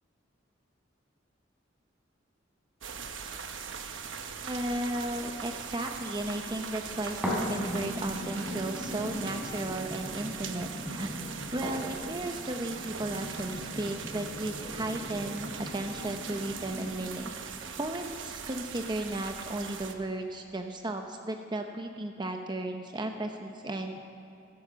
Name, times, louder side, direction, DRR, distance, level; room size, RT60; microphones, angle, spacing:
sound 1, 2.8-19.9, right 6 dB, 80° right, 1.1 m, -41 dB
voice 1, 4.4-11.1 11.5-17.3 17.8-24.0, right 1 dB, 25° right, 4 dB, 0.8 m, -35 dB
sound 2, 7.2-17.2 17.8-17.9, equal, 5° right, 3.8 m, -38 dB
14.0 x 12.0 x 7.6 m, 2.6 s
head